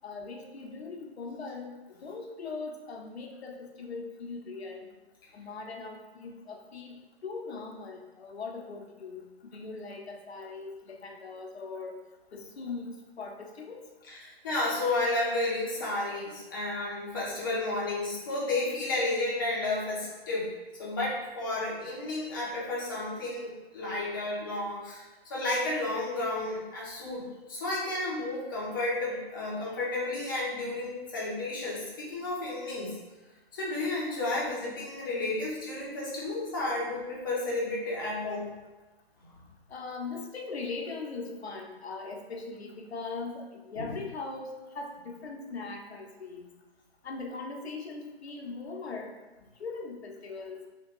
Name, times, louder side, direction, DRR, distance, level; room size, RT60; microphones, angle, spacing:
voice 1, 0.0-4.9 5.3-7.0 7.2-12.0 12.3-12.9 13.2-13.9 39.7-46.5 47.0-49.3 49.6-50.7, left 4 dB, 80° left, 2 dB, 0.7 m, -40 dB
voice 2, 14.1-20.5 20.8-33.0 33.5-38.6 43.8-44.0, left 2 dB, 20° left, -6 dB, 0.6 m, -32 dB
2.8 x 2.2 x 3.6 m, 1.1 s
hypercardioid pair, 155°, 31 cm